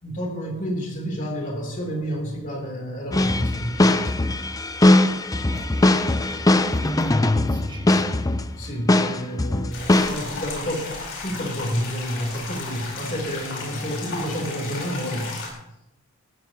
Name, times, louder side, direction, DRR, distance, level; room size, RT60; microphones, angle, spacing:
voice 1, 0.0-4.1 8.5-10.9 11.2-15.3, equal, 35° left, 0 dB, 3.5 m, -30 dB
sound 1, 3.1-8.6 8.9-10.1, left 1 dB, 15° left, 0.5 m, -20 dB
voice 2, 5.4-8.2, right 1 dB, 20° right, 4 dB, 1.4 m, -43 dB
sound 2, 9.7-15.5, left 3 dB, 60° left, 4.4 m, -34 dB
19.5 x 14.0 x 3.0 m, 0.89 s
head